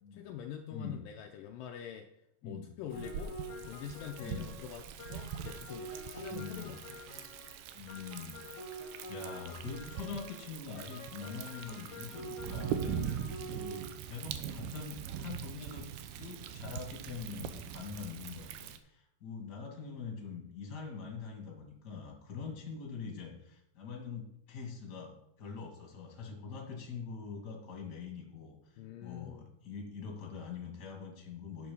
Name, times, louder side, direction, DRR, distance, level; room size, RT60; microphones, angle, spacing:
voice 1, 0.1-2.1 2.4-3.4 3.7-6.8 22.4-22.6 28.8-29.5, left 9 dB, 85° left, 4 dB, 1.9 m, -45 dB
sound 1, 2.9-7.6 7.9-14.0, right 1 dB, 65° left, 1.9 m, -47 dB
Thunder, 2.9-18.8, right 9 dB, 80° right, 2.6 m, -42 dB
voice 2, 4.2-4.5 6.3-6.8 7.7-8.4 9.1-15.9 16.1-31.7, left 5 dB, 35° left, 1 dB, 1.9 m, -44 dB
9.8 x 6.7 x 5.5 m, 0.82 s
omnidirectional pair, 4.7 m